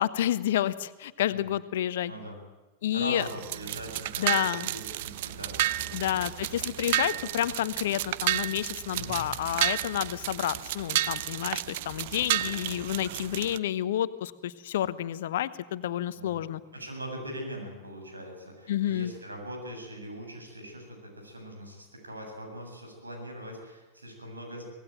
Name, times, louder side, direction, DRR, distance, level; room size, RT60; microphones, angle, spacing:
voice 1, 0.0-2.1 2.8-3.2 4.2-4.7 5.9-16.6 18.7-19.1, left 12 dB, 55° left, 15 dB, 1.1 m, -30 dB
voice 2, 2.1-2.4 2.9-4.3 4.6-6.7 8.9-9.2 16.1-16.4 16.7-24.6, equal, 80° right, 3 dB, 7.8 m, -41 dB
sound 1, 3.2-13.6, right 14 dB, 50° right, 0.7 m, -32 dB
25.0 x 19.0 x 9.1 m, 1.2 s
figure-of-eight pair, 90°, 0 cm